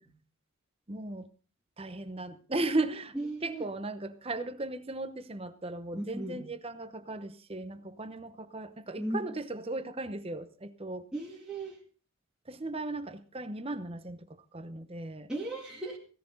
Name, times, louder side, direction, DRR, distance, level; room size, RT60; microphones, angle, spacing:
voice 1, 0.9-1.3 1.8-3.1 3.4-11.1 12.4-15.3, right 2 dB, 25° right, 11 dB, 0.9 m, -36 dB
voice 2, 3.2-3.6 5.9-6.4 9.0-9.2 11.1-11.8 15.3-16.0, right 1 dB, 5° right, -5 dB, 2.3 m, -36 dB
16.5 x 14.5 x 3.9 m, 0.37 s
head